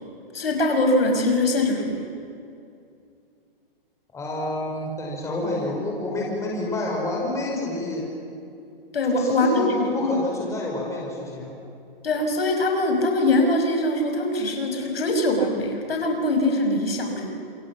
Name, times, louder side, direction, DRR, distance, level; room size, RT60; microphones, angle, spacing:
voice 1, 0.3-2.1 8.9-10.1 12.0-17.3, left 1 dB, 80° left, 3 dB, 6.1 m, -22 dB
voice 2, 4.1-8.1 9.1-11.5, left 2 dB, 10° left, -2 dB, 5.3 m, -28 dB
27.5 x 26.0 x 7.3 m, 2.5 s
hypercardioid pair, 150°, 29 cm